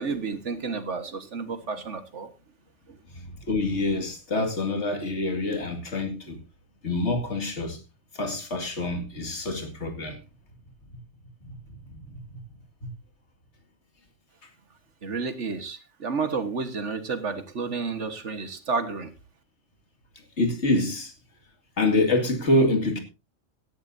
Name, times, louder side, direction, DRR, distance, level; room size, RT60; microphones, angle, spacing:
voice 1, 0.0-2.3 15.0-19.1, right 4 dB, 60° right, 1.8 m, -31 dB
voice 2, 3.2-6.4 6.8-7.8 8.1-10.2 11.4-11.5 12.8-12.9 20.4-21.1 21.8-23.0, left 2 dB, 60° left, 2.6 m, -26 dB
16.5 x 11.5 x 2.7 m
omnidirectional pair, 1.4 m